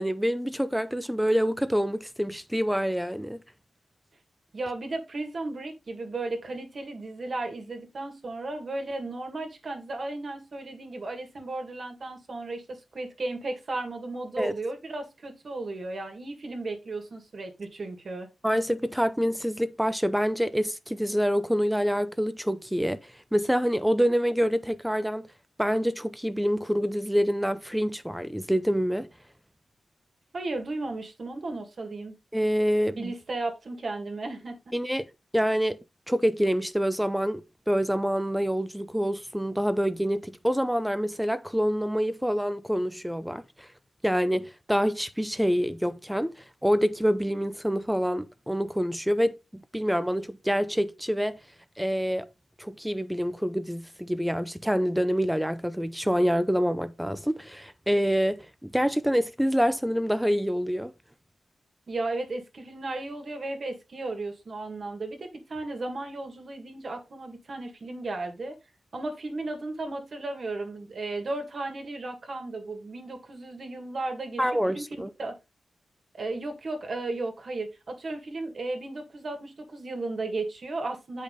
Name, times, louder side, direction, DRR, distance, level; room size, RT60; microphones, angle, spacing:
voice 1, 0.0-3.4 14.4-14.5 18.4-25.3 25.6-29.1 32.3-33.1 34.7-35.1 35.3-35.8 36.1-43.7 44.0-46.3 46.6-51.4 51.8-52.3 52.6-60.9 74.4-75.1, equal, 5° right, 0.5 m, -26 dB
voice 2, 4.5-18.3 30.3-32.2 33.0-34.7 61.9-68.6 68.9-74.4 74.7-74.8 75.2-75.4 76.1-81.2, right 2 dB, 50° right, 1.9 m, -35 dB
8.3 x 5.2 x 3.7 m
wide cardioid pair, 120°, 0 cm